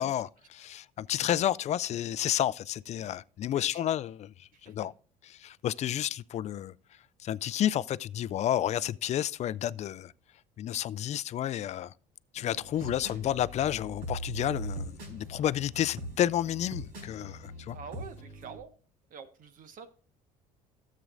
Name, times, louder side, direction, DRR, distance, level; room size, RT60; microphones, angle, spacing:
voice 1, 0.0-4.3 4.6-4.9 5.4-6.7 7.2-10.1 10.6-11.9 12.3-17.8, left 11 dB, 45° left, 0.4 m, -31 dB
voice 2, 3.5-4.0 4.5-4.7 12.8-13.4 17.7-18.7 19.1-19.9, right 6 dB, 55° right, 1.4 m, -47 dB
sound 1, 12.4-18.6, right 1 dB, 75° right, 4.4 m, -41 dB
13.0 x 7.5 x 2.5 m
supercardioid pair, 85°, 17 cm